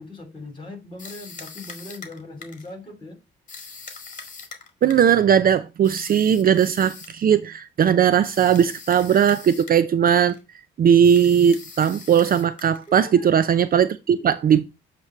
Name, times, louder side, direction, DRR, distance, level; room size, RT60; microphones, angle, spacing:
voice 1, 0.0-3.2 12.9-13.3, left 2 dB, 25° left, 3.1 m, -39 dB
sound 1, 1.0-2.7 3.5-5.2 5.8-7.2 8.2-9.8 10.1-10.4 11.0-12.9, left 5 dB, 40° left, 1.8 m, -42 dB
voice 2, 4.8-10.4 10.8-14.6, right 8 dB, 50° right, 0.5 m, -18 dB
8.1 x 2.9 x 5.8 m
cardioid pair, 90°, 20 cm